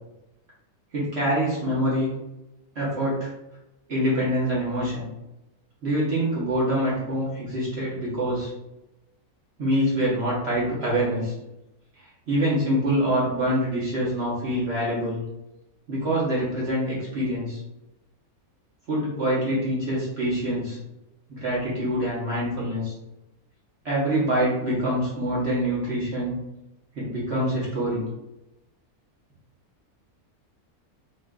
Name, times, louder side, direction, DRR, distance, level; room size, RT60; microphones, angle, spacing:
voice 1, 0.9-2.1 2.7-3.3 3.9-5.1 5.8-8.5 9.6-11.3 12.3-15.2 15.9-17.6 18.9-20.8 21.3-22.9 23.8-26.4 26.9-28.0, equal, 50° right, -7 dB, 1.1 m, -25 dB
3.7 x 2.4 x 2.2 m, 0.93 s
omnidirectional pair, 1.6 m